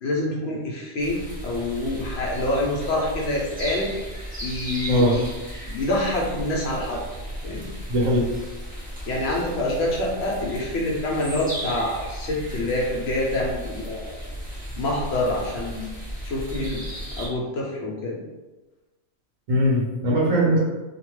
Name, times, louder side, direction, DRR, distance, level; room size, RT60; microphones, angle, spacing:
voice 1, 0.0-3.9 4.4-5.3 5.7-7.0 7.4-7.7 9.1-14.2 14.8-15.9 16.2-16.8 17.2-18.2, left 1 dB, 60° left, -3 dB, 0.8 m, -26 dB
sound 1, 1.0-17.3, equal, 10° right, 0.8 m, -35 dB
voice 2, 7.9-8.3 19.5-20.6, equal, 85° right, -4 dB, 1.3 m, -20 dB
2.7 x 2.2 x 3.0 m, 1.1 s
omnidirectional pair, 1.3 m